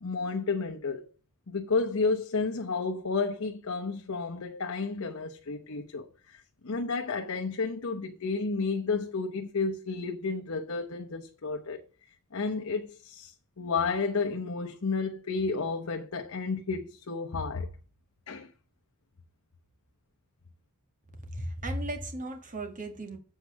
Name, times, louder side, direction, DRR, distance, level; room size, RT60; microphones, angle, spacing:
voice 1, 0.0-1.1 1.5-11.8 12.3-17.7 18.3-18.5, left 4 dB, 70° left, 0.9 m, -31 dB
voice 2, 21.3-23.2, right 1 dB, 35° right, 2.0 m, -35 dB
8.0 x 4.6 x 6.2 m
head